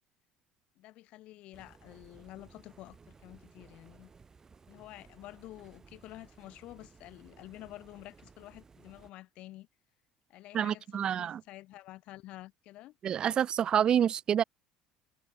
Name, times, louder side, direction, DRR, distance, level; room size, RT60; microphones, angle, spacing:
voice 1, 0.8-4.1 4.7-9.7 10.3-13.0, left 16 dB, 65° left, 3.6 m, -50 dB
Subway escalator from floor, 1.5-9.1, right 5 dB, 25° right, 3.0 m, -58 dB
voice 2, 10.5-11.4 13.0-14.4, right 9 dB, 45° right, 0.4 m, -27 dB
supercardioid pair, 95°, 2 cm